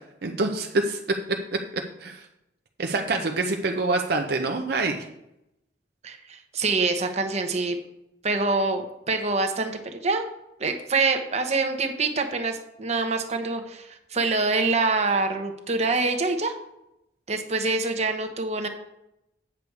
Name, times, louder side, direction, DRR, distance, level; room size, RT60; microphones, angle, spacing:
voice 1, 0.2-1.0 2.0-2.2 2.8-5.0, right 3 dB, 60° right, 4 dB, 0.7 m, -26 dB
voice 2, 6.0-7.8 8.2-10.3 10.6-16.5 17.3-18.7, right 3 dB, 40° right, 5 dB, 1.0 m, -25 dB
8.3 x 6.8 x 4.7 m, 0.85 s
head